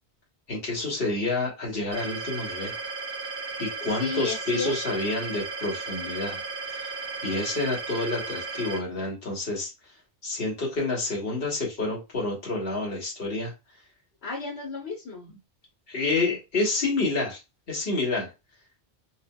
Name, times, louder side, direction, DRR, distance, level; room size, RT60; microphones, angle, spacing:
voice 1, 0.5-2.7 3.6-6.4 6.7-6.9 7.2-9.7 10.2-13.5 15.9-17.4 17.7-18.3, left 2 dB, 60° left, -2 dB, 1.4 m, -28 dB
sound 1, 1.9-8.8, right 4 dB, 55° right, 1.2 m, -35 dB
voice 2, 4.0-5.0 14.2-15.3, left 3 dB, 75° left, -3 dB, 1.4 m, -33 dB
2.8 x 2.7 x 2.2 m, 0.25 s
omnidirectional pair, 1.1 m